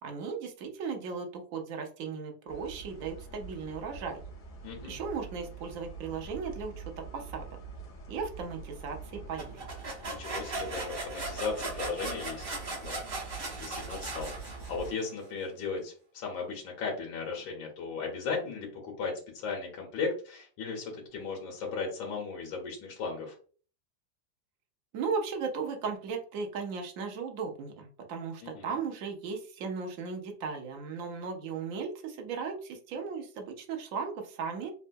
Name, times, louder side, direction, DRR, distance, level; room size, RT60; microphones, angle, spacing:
voice 1, 0.0-4.2 4.9-7.5 8.1-9.7 24.9-34.7, right 5 dB, 85° right, 3 dB, 0.7 m, -36 dB
sound 1, 2.5-14.9, right 4 dB, 60° left, 1.6 m, -45 dB
voice 2, 4.6-5.0 10.0-23.3 28.4-28.8, left 4 dB, 90° left, 1 dB, 1.6 m, -37 dB
sound 2, 9.4-15.0, right 2 dB, 40° right, 0.8 m, -38 dB
3.6 x 2.2 x 2.5 m, 0.41 s
omnidirectional pair, 2.1 m